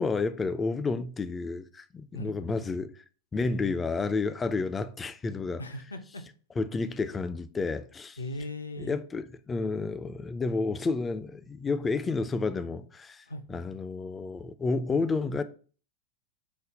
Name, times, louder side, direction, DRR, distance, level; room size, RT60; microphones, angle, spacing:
voice 1, 0.0-2.9 3.3-5.6 6.6-8.2 8.8-15.4, left 4 dB, 15° left, 0.3 m, -30 dB
voice 2, 2.1-2.6 5.6-6.2 8.2-9.0 13.3-13.4, left 1 dB, 75° left, 0.5 m, -38 dB
5.1 x 2.1 x 3.8 m
figure-of-eight pair, 90°, 0 cm